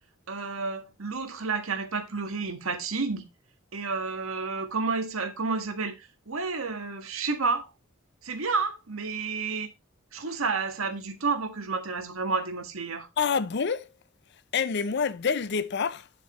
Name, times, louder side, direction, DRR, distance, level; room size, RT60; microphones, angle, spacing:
voice 1, 0.3-3.2 3.7-7.7 8.2-9.7 10.1-13.1, right 4 dB, 80° right, 1.6 m, -30 dB
voice 2, 13.2-13.9 14.5-16.1, left 6 dB, 55° left, 0.5 m, -27 dB
9.3 x 7.6 x 3.1 m
head